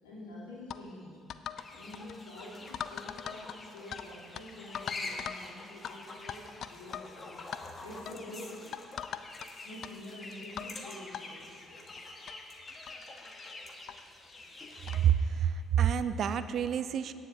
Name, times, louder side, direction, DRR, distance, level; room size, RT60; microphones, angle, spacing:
voice 1, 0.0-1.2 1.7-8.7 9.6-11.9 13.4-14.5, left 1 dB, 80° left, -7 dB, 3.0 m, -48 dB
sound 1, 0.7-0.8 1.3-1.7 1.9-2.2 2.7-4.1 4.3-4.4 4.7-5.4 5.8-5.9 6.3-7.1 7.4-7.6 8.1-8.2 8.7-9.5 9.8-9.9 10.6-10.7 11.1-11.2 12.0-12.1 12.3-12.4 12.9-13.0 13.9-14.0 14.9-15.1, left 9 dB, 55° left, 0.4 m, -40 dB
sound 2, 1.6-15.1, left 2 dB, 35° left, 1.3 m, -46 dB
voice 2, 14.9-17.1, right 9 dB, 55° right, 13 dB, 0.4 m, -28 dB
17.5 x 9.3 x 2.7 m, 2.3 s
figure-of-eight pair, 45°, 0 cm